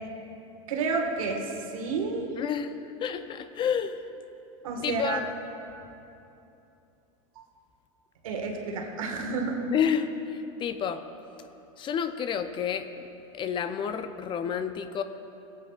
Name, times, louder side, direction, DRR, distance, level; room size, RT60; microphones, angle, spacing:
voice 1, 0.7-2.3 4.6-5.2 8.2-9.6, right 4 dB, 85° right, 2 dB, 1.4 m, -30 dB
voice 2, 2.4-4.0 4.8-5.2 9.7-11.0 11.8-12.9 13.3-15.0, left 7 dB, 30° left, 10 dB, 0.4 m, -30 dB
21.0 x 8.2 x 2.3 m, 2.9 s
supercardioid pair, 120°, 17 cm